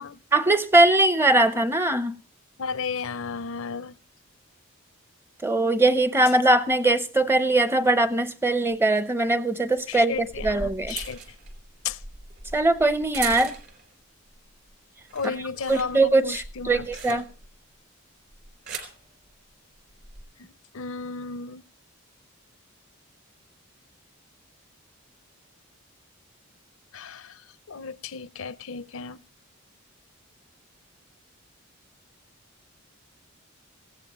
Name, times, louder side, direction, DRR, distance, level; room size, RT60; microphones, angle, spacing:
voice 1, 0.3-2.2 5.4-10.9 12.5-13.5 15.2-15.3 15.7-17.3, right 2 dB, 10° right, 0.7 m, -21 dB
voice 2, 2.6-3.9 9.9-11.2 11.8-12.0 15.1-17.2 20.4-21.6 26.9-27.4 27.7-29.2, left 5 dB, 70° left, 0.6 m, -34 dB
sound 1, 8.7-8.8 10.0-13.9 14.4-14.7 15.0-17.6 18.3-19.0 19.9-20.2, right 4 dB, 45° right, 3.8 m, -39 dB
19.0 x 16.0 x 3.0 m
head